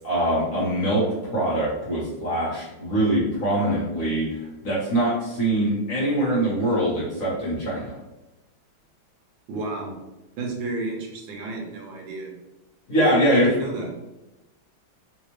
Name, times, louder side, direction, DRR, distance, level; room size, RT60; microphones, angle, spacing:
voice 1, 0.0-1.0 1.3-8.0 12.9-13.5, right 1 dB, 50° left, -7 dB, 1.4 m, -23 dB
voice 2, 9.5-10.0 10.4-12.3 13.3-13.9, right 3 dB, 75° right, 0 dB, 1.4 m, -32 dB
3.5 x 2.4 x 3.0 m, 0.96 s
omnidirectional pair, 2.1 m